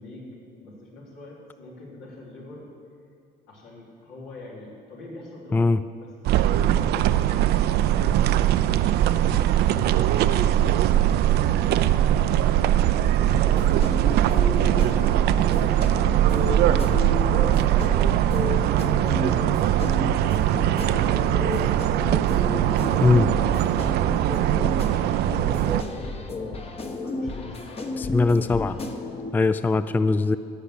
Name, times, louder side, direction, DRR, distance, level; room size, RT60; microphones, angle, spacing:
voice 1, 0.0-2.7 3.5-5.7 5.9-7.6 7.8-9.6 10.2-13.8 14.6-17.0 17.3-20.9 22.1-28.2, left 2 dB, 85° left, -5 dB, 4.1 m, -43 dB
sound 1, 6.2-25.8, right 12 dB, 75° right, 0.5 m, -21 dB
sound 2, 13.3-29.3, left 3 dB, 35° left, 1.2 m, -33 dB
voice 2, 28.0-28.8 29.3-30.4, left 3 dB, 10° left, 13 dB, 0.3 m, -20 dB
16.5 x 5.8 x 8.4 m, 2.3 s
cardioid pair, 110°, 17 cm